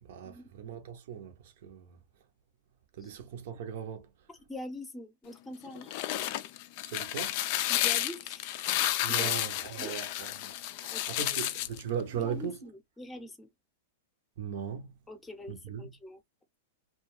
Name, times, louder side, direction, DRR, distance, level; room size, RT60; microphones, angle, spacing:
voice 1, 0.0-2.0 2.9-4.1 6.8-7.4 9.0-10.5 10.8-12.6 14.4-14.9 15.5-15.9, right 8 dB, 65° right, 0.7 m, -38 dB
voice 2, 4.5-6.0 7.7-8.5 9.1-9.3 9.8-10.0 10.9-11.4 12.1-13.5 15.1-16.2, left 2 dB, 10° left, 0.7 m, -44 dB
sound 1, 5.7-11.8, left 14 dB, 55° left, 0.3 m, -31 dB
2.3 x 2.3 x 3.1 m
hypercardioid pair, 125°, 0 cm